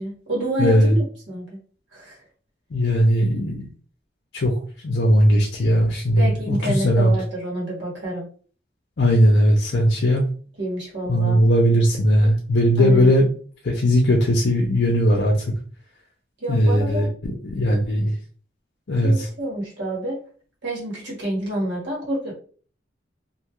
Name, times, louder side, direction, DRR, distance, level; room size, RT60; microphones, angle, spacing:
voice 1, 0.0-1.6 1.9-2.2 6.2-8.3 10.6-11.4 12.8-13.1 16.4-17.1 19.0-20.2 20.6-22.3, right 1 dB, 80° right, -4 dB, 1.5 m, -28 dB
voice 2, 0.6-0.9 2.7-3.6 4.3-4.5 4.8-7.1 9.0-10.2 11.1-13.3 13.6-15.5 16.5-17.1 17.4-18.1 18.9-19.3, equal, 65° left, -1 dB, 0.5 m, -18 dB
2.6 x 2.3 x 3.0 m, 0.42 s
head